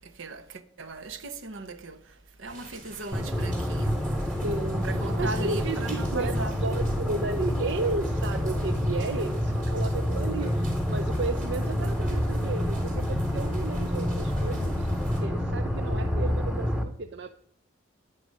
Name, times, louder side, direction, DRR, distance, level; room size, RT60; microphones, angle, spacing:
voice 1, 0.0-4.0 4.8-6.6, right 2 dB, 75° right, 1.0 m, -38 dB
sound 1, 2.4-15.2, right 2 dB, 40° right, 3.6 m, -48 dB
sound 2, 3.1-16.8, equal, 5° right, 0.9 m, -28 dB
voice 2, 4.4-4.9 5.2-14.9 15.2-17.3, right 3 dB, 60° right, 0.5 m, -33 dB
10.5 x 9.9 x 5.4 m
head